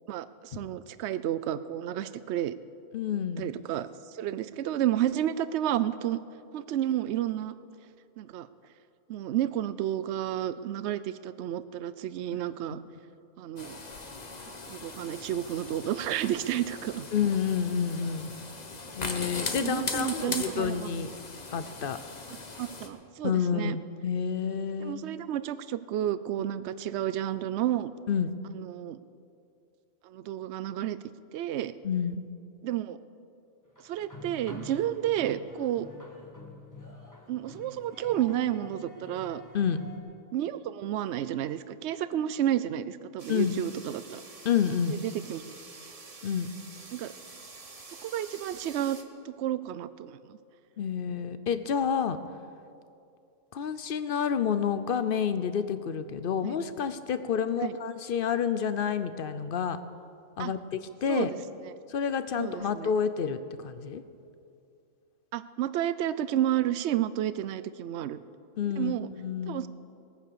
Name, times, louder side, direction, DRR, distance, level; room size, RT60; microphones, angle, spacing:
voice 1, 0.1-2.6 3.4-3.9 4.1-6.2 6.5-7.5 8.2-8.5 9.1-12.8 13.4-13.8 14.7-17.1 19.6-21.0 22.6-23.8 24.8-27.9 28.5-29.0 30.0-31.0 31.3-31.7 32.6-33.0 33.8-35.9 37.3-39.4 40.3-44.2 45.0-45.4 46.9-47.1 48.0-49.0 49.2-50.4 56.4-56.5 57.6-57.7 60.4-60.5 61.1-61.4 62.4-62.9 65.3-68.2 68.8-69.1 69.5-69.7, right 12 dB, 65° right, 14 dB, 0.8 m, -31 dB
voice 2, 2.9-3.5 12.7-12.8 17.1-18.3 19.0-21.1 21.5-22.0 23.2-25.2 28.1-28.3 31.8-32.3 39.5-39.8 43.3-43.6 44.4-44.9 46.2-46.6 50.8-52.2 53.5-59.8 60.4-61.3 61.9-64.0 68.6-69.6, left 7 dB, 55° left, 12 dB, 0.7 m, -29 dB
sound 1, 13.6-22.9, left 3 dB, 35° left, 1.2 m, -39 dB
sound 2, 33.8-40.0, left 2 dB, 15° left, 1.5 m, -48 dB
sound 3, 43.2-49.0, right 3 dB, 30° right, 0.9 m, -48 dB
19.5 x 9.4 x 6.8 m, 2.5 s
omnidirectional pair, 1.4 m